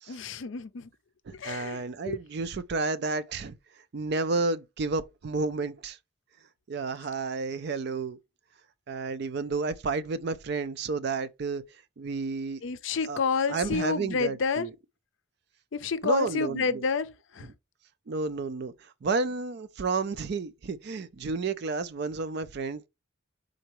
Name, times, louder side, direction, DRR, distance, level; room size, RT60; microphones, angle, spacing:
voice 1, 0.1-0.9 1.3-2.2 12.6-14.7 15.7-17.5, left 5 dB, 65° left, 0.5 m, -29 dB
voice 2, 1.3-3.5 3.9-6.0 6.7-8.2 8.9-11.6 12.0-12.6 13.1-13.2 13.5-14.7 16.0-16.8 17.4-17.5 18.1-22.9, right 4 dB, 55° right, 0.4 m, -31 dB
4.5 x 3.8 x 3.0 m
head